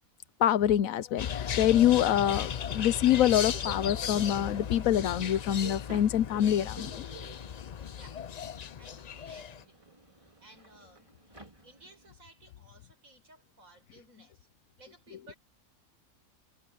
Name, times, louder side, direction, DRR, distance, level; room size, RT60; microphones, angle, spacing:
voice 1, 0.4-7.0, left 11 dB, 85° left, 1.1 m, -25 dB
sound 1, 1.2-9.6, left 8 dB, 55° left, 0.4 m, -36 dB
Subway metro underground, 2.4-12.1, right 2 dB, 25° right, 3.8 m, -52 dB
sound 2, 5.9-13.3, right 2 dB, 55° right, 7.0 m, -59 dB
voice 2, 7.9-8.2 8.8-11.0 11.3-14.4 14.8-15.4, right 2 dB, 85° right, 6.0 m, -57 dB
omnidirectional pair, 1.4 m